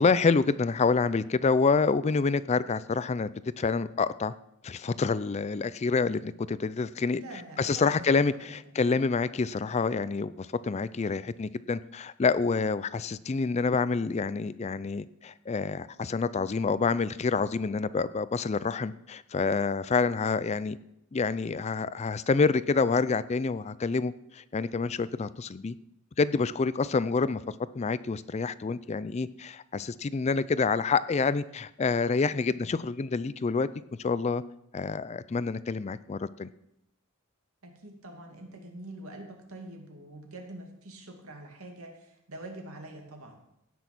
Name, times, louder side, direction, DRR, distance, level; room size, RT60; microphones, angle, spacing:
voice 1, 0.0-3.3 3.6-4.3 4.6-7.2 7.6-20.8 21.1-25.8 26.2-27.4 27.7-33.7 34.0-34.4 34.7-36.5, left 4 dB, 30° left, 16 dB, 0.4 m, -27 dB
voice 2, 7.2-8.0 8.2-8.8 37.6-43.4, right 1 dB, 75° right, 2 dB, 2.4 m, -45 dB
16.5 x 6.2 x 6.1 m, 0.81 s
head